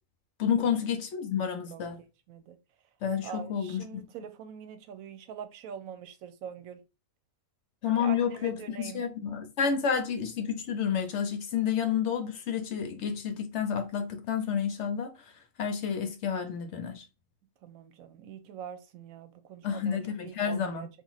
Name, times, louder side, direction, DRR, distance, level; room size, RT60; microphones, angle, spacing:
voice 1, 0.4-2.0 3.0-4.0 7.8-15.3 15.6-17.0 19.6-20.9, left 7 dB, 65° left, 0.9 m, -30 dB
voice 2, 1.7-2.6 3.2-6.8 7.9-9.1 17.6-20.9, right 8 dB, 80° right, 1.0 m, -44 dB
2.9 x 2.5 x 3.9 m
omnidirectional pair, 1.4 m